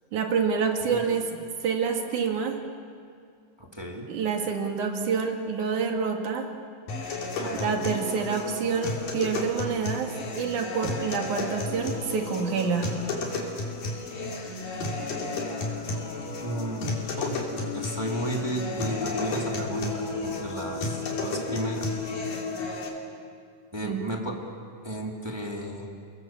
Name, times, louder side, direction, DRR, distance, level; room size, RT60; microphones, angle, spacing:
voice 1, 0.1-1.3 1.6-2.6 4.1-6.5 7.5-13.0 23.8-24.0, right 5 dB, 65° right, 3 dB, 3.5 m, -27 dB
voice 2, 3.6-4.1 7.4-7.9 16.4-22.0 23.7-24.4 24.8-25.9, right 1 dB, 10° right, -1 dB, 2.0 m, -34 dB
sound 1, 6.9-22.9, left 3 dB, 80° left, 4.6 m, -32 dB
sound 2, 7.4-22.8, left 1 dB, 50° left, 6.0 m, -45 dB
30.0 x 20.0 x 7.5 m, 2.3 s
omnidirectional pair, 3.8 m